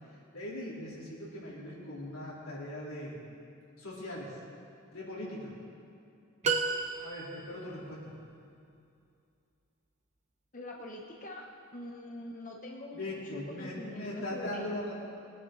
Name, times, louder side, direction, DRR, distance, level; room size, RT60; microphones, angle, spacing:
voice 1, 0.3-3.2 3.8-4.4 4.9-5.5 7.0-8.1 12.9-14.9, left 1 dB, 90° left, -6 dB, 3.6 m, -40 dB
sound 1, 6.4-7.6, right 4 dB, 35° right, 0.9 m, -31 dB
voice 2, 10.5-11.5 11.7-14.9, left 1 dB, 40° left, 0 dB, 0.9 m, -44 dB
21.0 x 9.6 x 3.9 m, 2.5 s
head